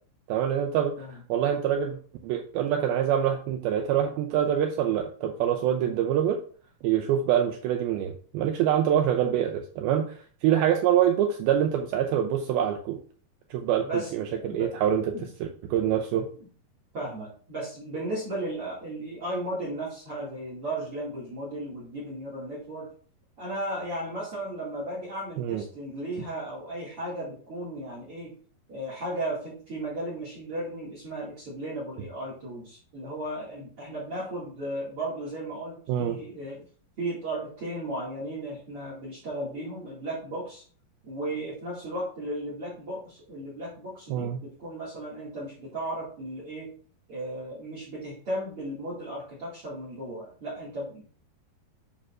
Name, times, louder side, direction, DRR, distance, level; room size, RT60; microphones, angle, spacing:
voice 1, 0.3-2.0 2.2-6.4 6.8-13.0 13.5-15.1 15.4-16.3 25.4-25.6 35.9-36.2 44.1-44.4, right 10 dB, 80° right, 4 dB, 2.3 m, -25 dB
voice 2, 13.8-14.7 15.1-15.3 16.9-22.9 23.4-28.3 28.7-36.6 37.0-40.6 41.0-46.7 47.1-51.0, right 1 dB, 40° right, -5 dB, 2.5 m, -35 dB
9.4 x 6.3 x 2.5 m, 0.43 s
omnidirectional pair, 4.8 m